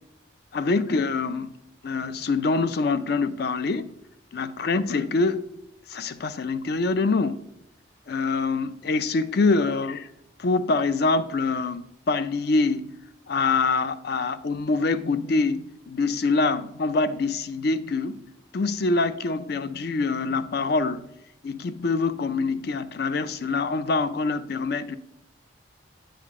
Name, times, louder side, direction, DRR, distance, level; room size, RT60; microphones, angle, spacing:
voice 1, 0.5-1.5 1.8-3.9 4.3-5.4 5.9-7.4 8.1-10.1 10.4-12.9 13.3-18.2 18.5-21.1 21.4-25.0, left 3 dB, 50° left, 0.4 m, -25 dB
9.0 x 6.4 x 3.6 m
head